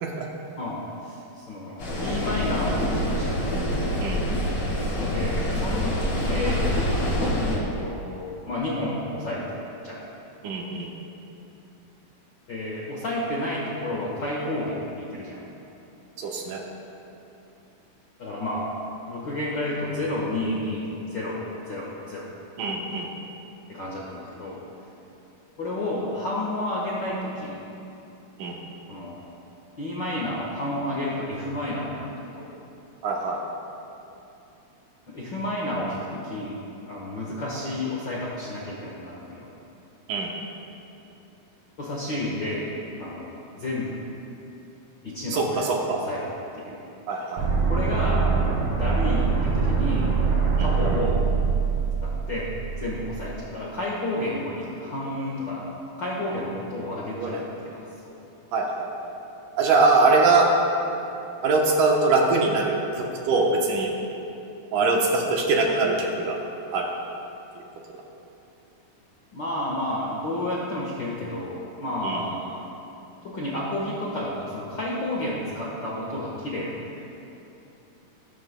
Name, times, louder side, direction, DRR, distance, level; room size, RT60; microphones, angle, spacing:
voice 1, 0.6-3.4 5.1-6.7 7.5-10.0 12.5-15.5 18.2-18.7 19.1-22.3 23.7-24.6 25.6-27.6 28.9-29.2 29.8-32.5 35.1-36.6 36.9-39.5 41.8-42.7 43.0-44.1 45.0-46.8 47.7-48.3 48.7-50.1 50.6-51.2 52.0-55.7 56.0-58.2 64.8-65.0 69.3-72.6 73.2-77.1, left 1 dB, 80° left, -5 dB, 1.0 m, -31 dB
sound 1, 1.8-7.6, left 1 dB, 50° left, 3.7 m, -26 dB
voice 2, 10.4-10.9 16.2-16.6 22.6-23.1 28.4-28.6 33.0-33.4 40.1-40.3 45.3-46.0 47.1-47.5 50.6-50.7 57.1-57.4 58.5-58.9 59.5-60.5 61.4-63.9 64.7-66.4 66.7-66.9 72.0-72.2, right 3 dB, 70° right, 0 dB, 2.2 m, -22 dB
sound 2, 47.4-53.4, right 5 dB, 45° right, 2.5 m, -24 dB
20.0 x 10.5 x 2.2 m, 2.8 s
omnidirectional pair, 4.2 m